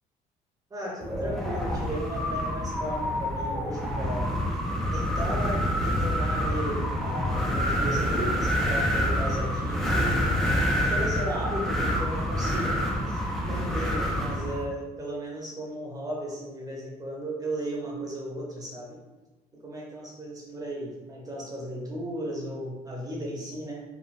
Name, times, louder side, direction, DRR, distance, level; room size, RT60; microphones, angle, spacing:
voice 1, 0.7-4.3 4.9-10.2 10.7-19.0 19.5-23.8, right 1 dB, 20° right, -3 dB, 0.8 m, -35 dB
Wind, 1.0-14.6, equal, ahead, 0.4 m, -27 dB
3.2 x 2.0 x 2.6 m, 1.1 s
cardioid pair, 110°, 17 cm